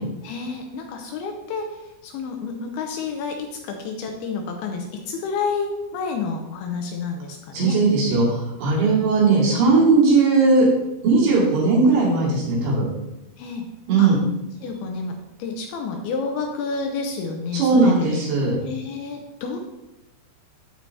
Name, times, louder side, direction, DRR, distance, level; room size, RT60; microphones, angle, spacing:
voice 1, 0.2-7.8 13.4-13.7 14.0-14.1 14.6-18.2 18.6-19.6, left 4 dB, 80° left, 3 dB, 2.4 m, -30 dB
voice 2, 7.5-10.7 11.0-12.9 13.9-14.2 17.5-18.6, right 3 dB, 75° right, -6 dB, 4.4 m, -18 dB
13.5 x 4.5 x 2.8 m, 0.97 s
omnidirectional pair, 4.9 m